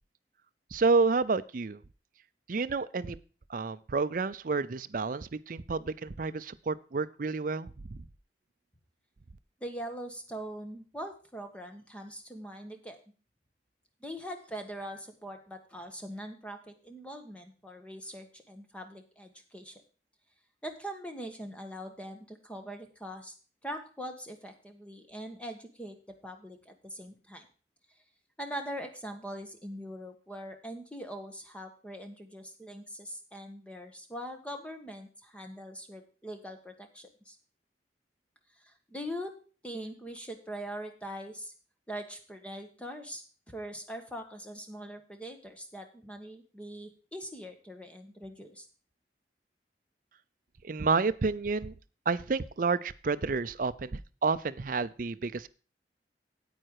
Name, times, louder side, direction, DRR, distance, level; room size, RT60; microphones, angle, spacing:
voice 1, 0.7-1.8 2.5-3.2 3.5-8.0 50.6-51.7 52.1-55.5, right 4 dB, 50° right, 13 dB, 0.5 m, -30 dB
voice 2, 9.6-13.0 14.0-19.8 20.6-23.3 23.6-27.5 28.4-37.4 38.6-39.3 39.6-41.5 41.9-48.7, equal, 5° left, 5 dB, 1.5 m, -42 dB
9.2 x 8.8 x 4.7 m, 0.37 s
head